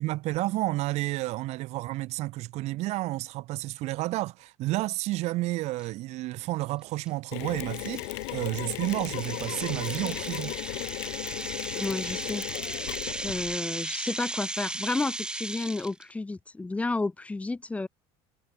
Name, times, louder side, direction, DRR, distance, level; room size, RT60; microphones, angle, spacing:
voice 1, 0.0-10.6, right 18 dB, 55° right, 4.0 m, -31 dB
sound 1, 5.8-5.9 6.4-6.6 7.1-7.2 7.7-16.0, right 2 dB, 5° right, 2.4 m, -36 dB
Mechanisms, 7.3-13.6, left 32 dB, 85° left, 2.5 m, -36 dB
voice 2, 11.7-12.4 13.2-17.9, left 3 dB, 10° left, 6.3 m, -31 dB
cardioid pair, 150°, 13 cm